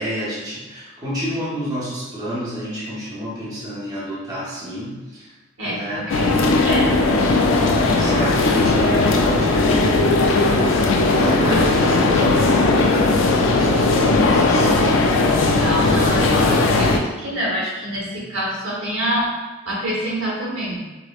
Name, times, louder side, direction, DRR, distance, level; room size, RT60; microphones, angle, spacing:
voice 1, 0.0-5.3 5.6-6.1 7.9-10.1 10.8-14.9, equal, 20° right, -9 dB, 0.8 m, -29 dB
voice 2, 5.6-6.9 15.4-19.3 19.7-20.8, equal, 75° right, -5 dB, 1.2 m, -26 dB
sound 1, 6.1-17.0, left 3 dB, 65° left, 0.4 m, -17 dB
5.0 x 2.0 x 2.4 m, 1.2 s
head